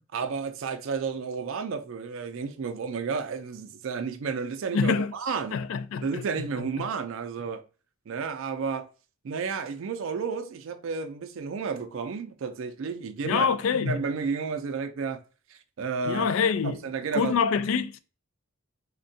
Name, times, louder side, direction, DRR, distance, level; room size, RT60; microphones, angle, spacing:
voice 1, 0.1-5.6 6.0-7.6 8.1-8.9 9.2-13.5 13.7-15.2 15.5-16.3 16.6-17.4, right 5 dB, 70° right, 0.4 m, -32 dB
voice 2, 4.7-5.1 5.5-6.2 13.2-14.0 16.1-16.8 17.1-18.0, left 6 dB, 70° left, 0.3 m, -25 dB
3.5 x 2.2 x 2.6 m
head